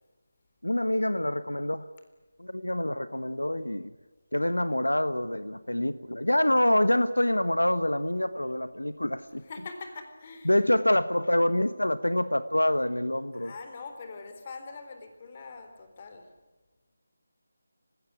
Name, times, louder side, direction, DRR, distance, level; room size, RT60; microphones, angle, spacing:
voice 1, 0.6-1.9 2.4-3.9 4.3-9.4 10.4-13.5, left 1 dB, 80° left, 1.2 m, -26 dB
voice 2, 9.4-10.5 13.3-16.3, left 4 dB, 30° left, 3.8 m, -43 dB
30.0 x 17.0 x 9.9 m
figure-of-eight pair, 160°, 0 cm